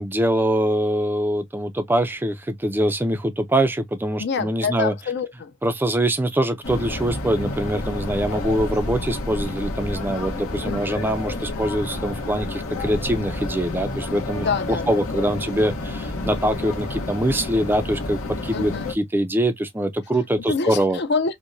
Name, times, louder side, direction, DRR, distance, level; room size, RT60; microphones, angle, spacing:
voice 1, 0.0-4.9 5.6-14.5 14.9-21.0, right 1 dB, 10° right, 0.4 m, -23 dB
voice 2, 4.2-5.5 10.6-11.0 14.4-15.2 18.5-18.9 20.5-21.4, left 5 dB, 50° left, 0.5 m, -27 dB
sound 1, 6.6-18.9, left 2 dB, 85° left, 1.1 m, -30 dB
4.6 x 2.1 x 2.6 m
head